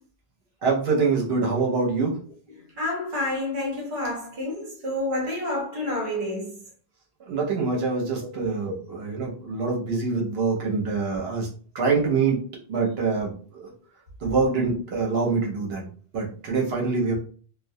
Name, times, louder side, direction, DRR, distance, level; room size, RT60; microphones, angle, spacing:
voice 1, 0.6-2.2 7.3-11.5 11.7-12.4 12.7-13.7 14.2-15.9 16.1-17.1, right 4 dB, 80° right, 0.9 m, -25 dB
voice 2, 2.8-6.6 8.7-8.8, left 1 dB, 40° right, 0.9 m, -29 dB
2.2 x 2.1 x 2.6 m
omnidirectional pair, 1.0 m